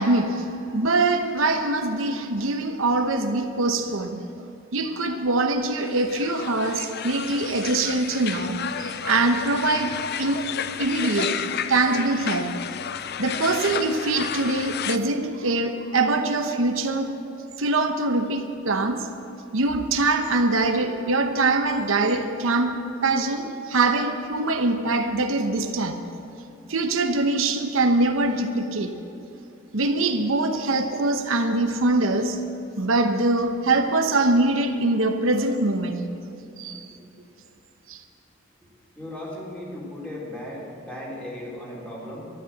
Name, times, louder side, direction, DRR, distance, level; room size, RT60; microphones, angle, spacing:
voice 1, 0.0-4.2 4.7-10.5 10.8-12.6 13.2-17.2 17.6-19.1 19.5-26.0 26.7-29.0 29.7-32.4 32.8-36.1 36.6-36.8 37.9-38.0, right 2 dB, 85° right, 1.0 m, -23 dB
sound 1, 5.8-15.0, left 8 dB, 55° left, 0.5 m, -32 dB
voice 2, 39.0-42.2, left 1 dB, 5° left, 3.5 m, -36 dB
12.5 x 11.5 x 7.9 m
head